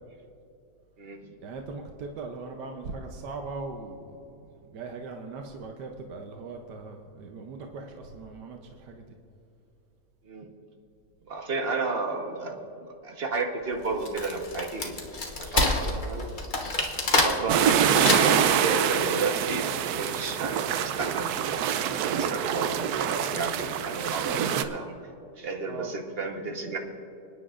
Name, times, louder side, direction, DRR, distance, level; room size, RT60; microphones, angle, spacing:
voice 1, 1.4-9.2 25.7-25.9, right 3 dB, 90° right, 3 dB, 1.4 m, -40 dB
voice 2, 11.3-15.0 15.4-16.3 17.2-24.9 25.4-26.8, right 3 dB, 40° right, 2 dB, 1.2 m, -32 dB
Wood, 13.8-18.6, left 2 dB, 35° left, 1.1 m, -27 dB
sound 1, 17.5-24.6, right 9 dB, 75° right, 1.1 m, -25 dB
26.5 x 9.9 x 2.5 m, 2.8 s
omnidirectional pair, 1.8 m